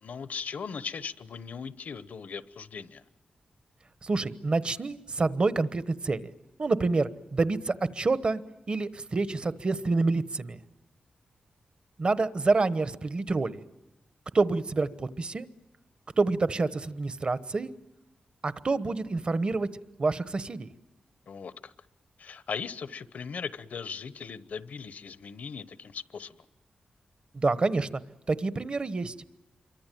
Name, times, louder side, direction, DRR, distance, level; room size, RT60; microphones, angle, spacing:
voice 1, 0.0-3.0 21.3-21.7 22.2-26.4, left 6 dB, 75° left, 14 dB, 1.0 m, -38 dB
voice 2, 4.0-6.3 6.6-8.4 8.7-10.6 12.0-13.6 14.3-15.5 16.2-17.7 18.4-19.7 20.0-20.7 27.3-28.0 28.3-29.1, right 3 dB, 40° right, 14 dB, 1.1 m, -27 dB
27.0 x 24.0 x 9.2 m, 0.94 s
wide cardioid pair, 120°, 3 cm